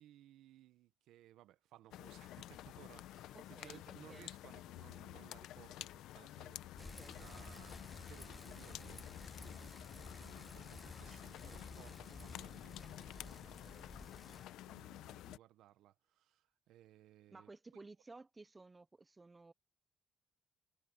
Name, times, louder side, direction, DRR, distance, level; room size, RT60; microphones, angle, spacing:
voice 1, 0.0-17.8, right 13 dB, 85° right, 1.0 m, -62 dB
sound 1, 1.9-15.4, left 14 dB, 90° left, 0.7 m, -51 dB
voice 2, 3.3-3.8 4.1-4.3 7.0-7.2 17.3-19.5, right 3 dB, 20° right, 0.6 m, -56 dB
Bicycle, 6.8-14.5, left 2 dB, 15° left, 1.0 m, -53 dB
cardioid pair, 90°, 0 cm